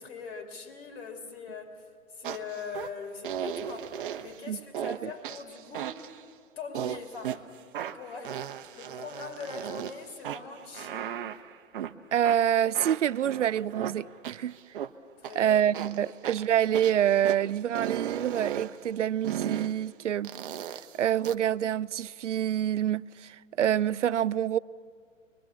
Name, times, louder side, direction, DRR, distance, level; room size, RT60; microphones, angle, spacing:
voice 1, 0.0-3.9 4.2-6.0 6.6-7.5 7.9-8.4 8.7-11.1 15.2-15.6 16.1-16.2, left 5 dB, 50° left, 3.0 m, -41 dB
sound 1, 2.2-2.9 3.2-4.4 4.7-5.0 5.2-6.2 6.7-7.4 7.7-9.9 10.2-11.9 12.2-14.9 15.2-15.4 15.7-17.4 17.7-18.7 19.2-19.7 20.2-21.3, right 10 dB, 40° right, 0.8 m, -36 dB
voice 2, 12.1-14.6 15.3-20.3 20.9-24.6, right 10 dB, 65° right, 0.5 m, -27 dB
23.5 x 22.0 x 7.0 m
figure-of-eight pair, 115°, 40 cm